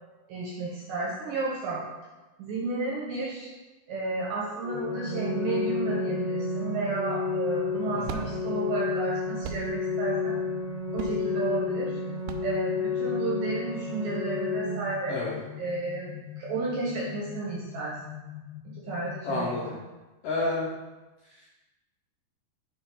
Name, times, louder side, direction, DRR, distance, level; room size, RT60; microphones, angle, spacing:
voice 1, 0.3-1.9 2.4-3.5 3.9-10.4 10.9-12.0 12.4-15.2 15.6-18.0 18.7-19.8, right 3 dB, 65° right, -4 dB, 2.2 m, -32 dB
Organ, 4.6-15.6, left 4 dB, 45° left, 2.2 m, -31 dB
sound 1, 4.7-19.7, left 12 dB, 90° left, 3.0 m, -43 dB
sound 2, 7.3-13.5, right 7 dB, 90° right, 2.2 m, -42 dB
voice 2, 7.9-8.3 15.1-15.3 19.2-19.7 20.2-20.7 21.3-21.5, left 2 dB, 75° left, -6 dB, 1.9 m, -30 dB
8.7 x 4.9 x 3.9 m, 1.2 s
omnidirectional pair, 5.1 m